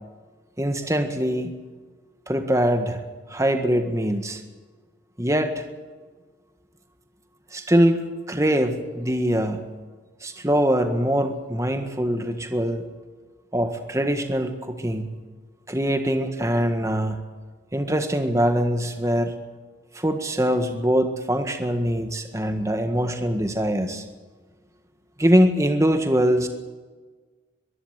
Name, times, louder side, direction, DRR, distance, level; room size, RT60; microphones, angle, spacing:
voice 1, 0.6-1.5 2.3-3.0 3.3-4.4 5.2-5.6 7.5-8.0 8.3-9.6 10.2-12.8 13.5-15.1 15.7-17.2 17.7-19.3 19.9-24.0 25.2-26.5, equal, 15° right, 6 dB, 1.7 m, -23 dB
23.0 x 14.5 x 9.2 m, 1.3 s
head